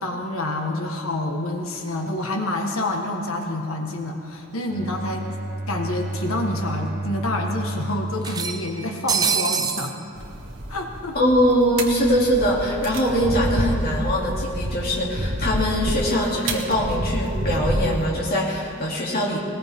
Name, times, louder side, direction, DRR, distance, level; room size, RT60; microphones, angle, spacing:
voice 1, 0.0-5.3 5.7-10.0 10.7-11.2, left 1 dB, 70° left, 2 dB, 1.6 m, -28 dB
Bowed string instrument, 4.7-9.6, right 2 dB, 40° right, 1.2 m, -32 dB
sound 1, 4.8-4.9 5.2-5.3 6.4-6.5 6.8-6.9 8.2-9.9, right 6 dB, 20° right, 0.5 m, -25 dB
sound 2, 10.2-18.1, right 1 dB, 55° right, 1.7 m, -28 dB
voice 2, 11.1-19.4, equal, 45° left, -4 dB, 2.9 m, -22 dB
20.0 x 19.5 x 3.7 m, 2.4 s
head